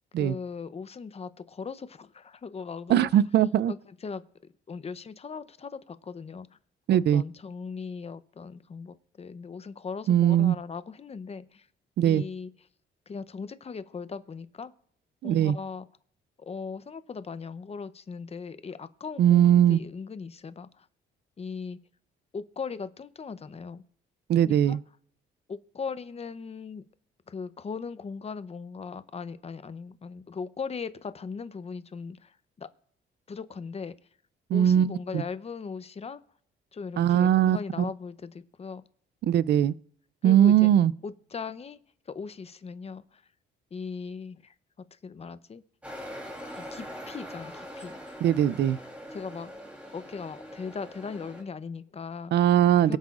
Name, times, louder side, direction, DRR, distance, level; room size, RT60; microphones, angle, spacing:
voice 1, 0.2-3.2 3.7-4.2 4.7-6.5 7.1-11.7 12.0-12.5 13.1-14.7 15.2-15.9 16.4-20.9 21.4-21.8 22.3-23.8 24.4-24.8 25.5-26.8 27.3-32.7 33.3-33.9 34.5-36.2 36.7-38.8 40.2-40.7 41.0-41.8 42.1-43.2 43.7-45.6 46.6-48.0 49.1-49.5 49.9-52.3 52.8-53.0, left 5 dB, 30° left, 0.7 m, -39 dB
voice 2, 2.9-3.7 6.9-7.2 10.1-10.6 12.0-12.2 15.2-15.6 19.2-19.8 24.3-24.8 34.5-35.2 37.0-37.9 39.2-39.7 40.2-40.9 48.2-48.8 52.3-53.0, right 10 dB, 60° right, 0.4 m, -21 dB
sound 1, 45.8-51.4, equal, 5° right, 3.1 m, -42 dB
23.0 x 7.8 x 2.5 m
cardioid pair, 90°, 20 cm